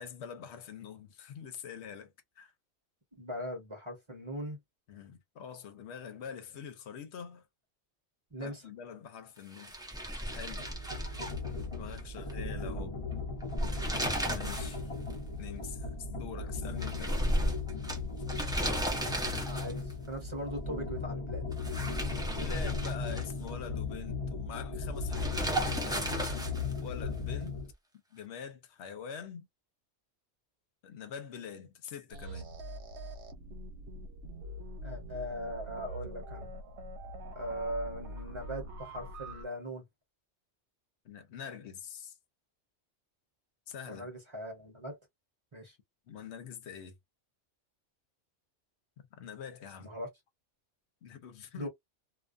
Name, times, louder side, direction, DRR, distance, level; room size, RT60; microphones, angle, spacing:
voice 1, 0.0-2.5 4.9-7.4 8.4-9.7 10.3-10.7 11.8-12.9 14.3-14.9 15.4-17.3 22.4-26.3 26.8-27.6 28.1-29.5 30.8-32.6 41.0-42.1 43.7-44.1 46.1-46.9 49.0-49.9 51.0-51.7, left 7 dB, 75° left, 1.0 m, -45 dB
voice 2, 3.1-4.6 8.3-8.6 19.5-21.4 34.8-36.5 37.3-39.8 43.9-45.0 45.5-45.8 49.8-50.1 51.6-51.7, equal, 25° right, 1.0 m, -40 dB
sound 1, 9.5-12.0 12.3-12.4 13.4-14.8 15.1-15.2 16.8-19.9 21.5-23.5 25.1-26.8, equal, 5° right, 0.6 m, -34 dB
sound 2, 10.3-27.7, left 4 dB, 35° left, 0.7 m, -37 dB
sound 3, 32.1-39.4, right 1 dB, 70° right, 0.9 m, -44 dB
2.4 x 2.2 x 2.5 m
omnidirectional pair, 1.2 m